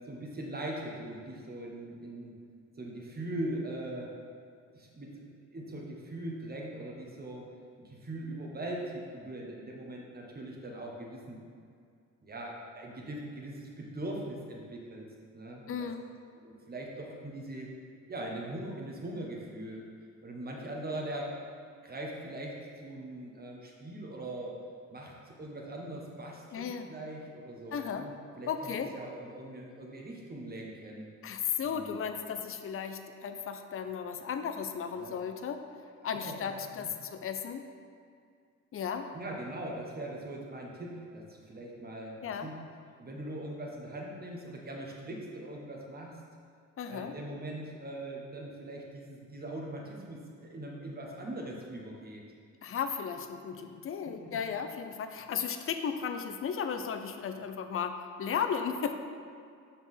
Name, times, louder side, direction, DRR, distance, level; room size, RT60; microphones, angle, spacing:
voice 1, 0.0-2.4 2.8-4.1 4.7-7.5 7.8-11.4 12.2-15.1 15.3-15.9 16.4-17.7 18.1-19.9 20.2-21.3 21.8-24.6 24.9-31.1 31.6-31.9 35.0-35.2 36.0-36.5 36.8-36.9 39.1-42.6 43.0-46.2 46.9-52.2 53.7-53.8 54.1-54.4, right 1 dB, 30° right, -1 dB, 1.4 m, -41 dB
voice 2, 15.7-16.0 26.5-26.9 27.7-28.1 28.5-28.9 31.2-35.6 36.0-37.7 38.7-39.1 42.2-42.5 46.8-47.1 52.6-58.9, left 7 dB, 45° left, 7 dB, 0.6 m, -35 dB
5.9 x 4.4 x 5.6 m, 2.2 s
cardioid pair, 90°, 30 cm